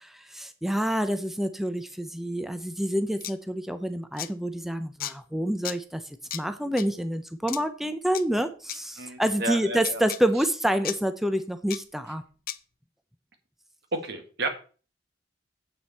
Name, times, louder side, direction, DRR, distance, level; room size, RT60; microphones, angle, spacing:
voice 1, 0.0-6.0 6.3-12.2, equal, ahead, 9 dB, 0.5 m, -28 dB
sound 1, 3.2-3.3 4.2-4.3 5.0-5.1 5.6-5.8 6.3-6.4 6.8-6.9 7.5-7.6 8.1-8.2 8.7-8.8 9.8-10.2 10.8-11.0 11.7-11.8 12.5-12.6, left 12 dB, 55° left, 0.6 m, -34 dB
voice 2, 9.0-10.0 13.9-14.5, right 2 dB, 65° right, 6 dB, 1.8 m, -31 dB
9.3 x 8.0 x 4.2 m, 0.37 s
head